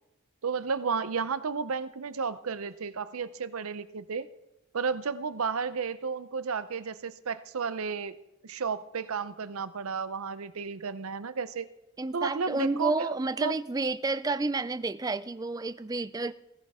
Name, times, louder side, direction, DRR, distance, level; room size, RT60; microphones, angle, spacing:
voice 1, 0.4-4.3 4.7-8.1 8.4-11.7 12.1-13.5, right 5 dB, 90° right, 0.7 m, -32 dB
voice 2, 12.0-16.3, right 3 dB, 15° right, 0.3 m, -30 dB
16.0 x 15.0 x 3.6 m
head